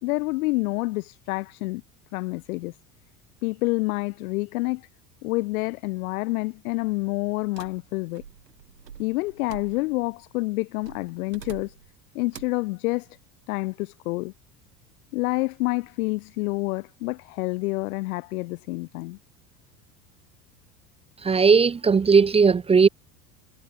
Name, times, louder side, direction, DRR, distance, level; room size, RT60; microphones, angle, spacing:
voice 1, 0.0-1.8 2.1-2.8 3.4-4.9 5.2-8.2 9.0-11.7 12.1-13.1 13.5-14.3 15.1-19.2, left 22 dB, 60° left, 1.1 m, -28 dB
sound 1, 7.6-10.1 10.8-11.9 12.3-12.7, right 8 dB, 80° right, 8.0 m, -45 dB
voice 2, 21.2-22.9, right 5 dB, 15° right, 0.6 m, -17 dB
figure-of-eight pair, 75°, 48 cm